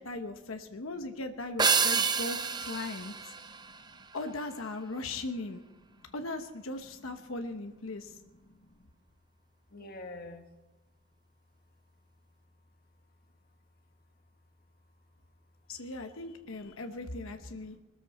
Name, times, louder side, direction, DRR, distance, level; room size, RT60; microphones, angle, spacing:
voice 1, 0.0-3.2 4.1-5.6 6.1-8.2 15.7-17.8, left 2 dB, 90° left, 6 dB, 1.1 m, -38 dB
sound 1, 1.6-4.2, right 5 dB, 20° right, 0.5 m, -29 dB
voice 2, 8.5-8.9 9.7-10.4 17.5-17.8, left 2 dB, 50° left, 5 dB, 1.6 m, -48 dB
21.5 x 13.5 x 4.3 m, 1.1 s
head